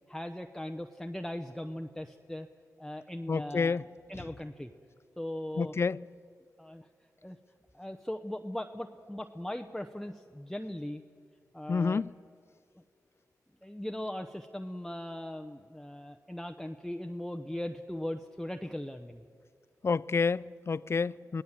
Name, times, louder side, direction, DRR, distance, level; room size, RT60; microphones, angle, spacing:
voice 1, 0.1-2.5 2.8-3.8 4.1-4.7 5.2-5.7 6.6-6.9 7.2-7.4 7.7-11.0 11.5-12.0 13.6-19.2, left 1 dB, 5° left, 0.9 m, -39 dB
voice 2, 3.3-3.8 4.1-4.2 5.6-6.0 11.7-12.1 19.8-21.4, left 4 dB, 40° left, 0.4 m, -29 dB
23.5 x 17.0 x 7.4 m
cardioid pair, 60°, 7 cm